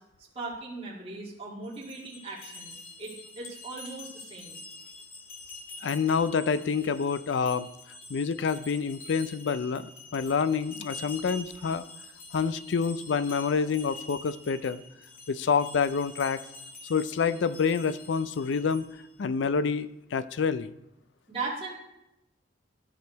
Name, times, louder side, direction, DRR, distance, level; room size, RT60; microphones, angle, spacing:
voice 1, 0.4-4.6 21.3-21.7, right 3 dB, 30° right, -5 dB, 1.8 m, -38 dB
sound 1, 1.6-19.1, left 2 dB, 50° left, 2.1 m, -46 dB
voice 2, 5.8-7.7 8.1-11.8 12.3-14.8 15.3-16.4 16.9-18.9 19.2-20.7, left 5 dB, 75° left, 15 dB, 0.4 m, -27 dB
13.0 x 5.1 x 4.6 m, 0.89 s
head